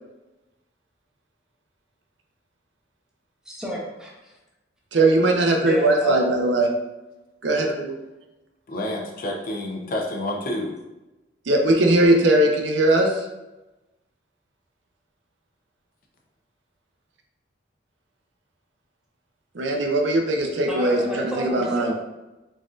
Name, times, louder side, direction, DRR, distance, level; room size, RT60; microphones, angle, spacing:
voice 1, 3.5-4.3 5.6-6.4 20.7-21.9, right 1 dB, 5° right, -4 dB, 0.8 m, -31 dB
voice 2, 4.9-6.7 7.4-7.9 11.5-13.1 19.5-21.9, right 1 dB, 75° right, 2 dB, 0.6 m, -20 dB
voice 3, 8.7-10.7, left 1 dB, 50° left, 0 dB, 0.6 m, -29 dB
4.0 x 3.7 x 2.4 m, 1.0 s
head